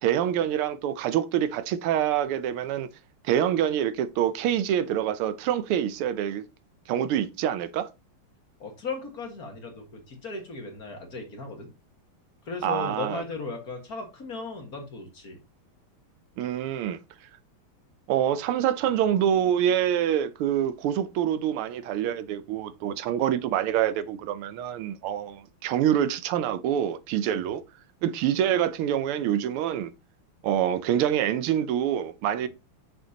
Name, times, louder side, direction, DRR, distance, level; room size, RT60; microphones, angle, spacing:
voice 1, 0.0-2.9 3.2-6.4 6.9-7.9 12.6-13.2 16.4-17.0 18.1-27.6 28.0-29.9 30.4-32.5, right 10 dB, 80° right, 1.5 m, -26 dB
voice 2, 8.6-11.7 12.4-15.4 27.3-27.5 32.4-32.5, left 3 dB, 45° left, 2.0 m, -36 dB
6.6 x 6.5 x 2.8 m
omnidirectional pair, 2.4 m